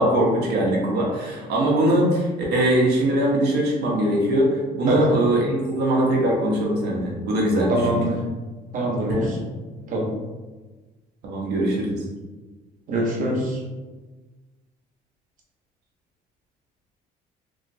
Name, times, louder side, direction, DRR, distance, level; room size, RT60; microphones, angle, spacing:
voice 1, 0.0-8.0 9.1-9.3 11.2-12.0, right 1 dB, 75° right, -3 dB, 0.9 m, -21 dB
voice 2, 7.7-8.2 8.7-9.4 9.9-10.1 12.9-13.6, right 1 dB, 50° right, -3 dB, 1.0 m, -23 dB
3.1 x 2.8 x 2.6 m, 1.2 s
cardioid pair, 110°, 17 cm